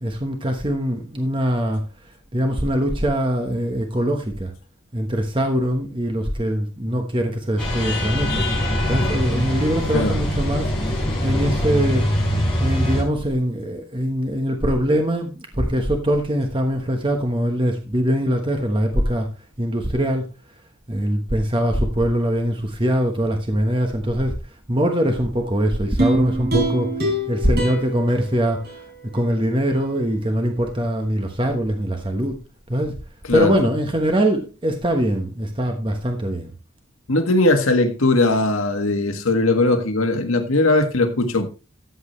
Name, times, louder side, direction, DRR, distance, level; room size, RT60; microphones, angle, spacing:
voice 1, 0.0-4.5 4.9-8.4 8.9-10.7 11.2-12.1 12.6-19.3 19.6-20.2 20.9-28.8 29.1-32.4 32.7-33.0 33.3-36.5, equal, 25° right, 1.2 m, -22 dB
sound 1, 7.6-13.0, equal, 5° left, 5.0 m, -23 dB
sound 2, 26.0-29.3 29.7-29.8, right 1 dB, 50° right, 3.7 m, -25 dB
voice 2, 37.1-41.5, left 2 dB, 85° left, 1.6 m, -19 dB
13.5 x 7.9 x 3.2 m
head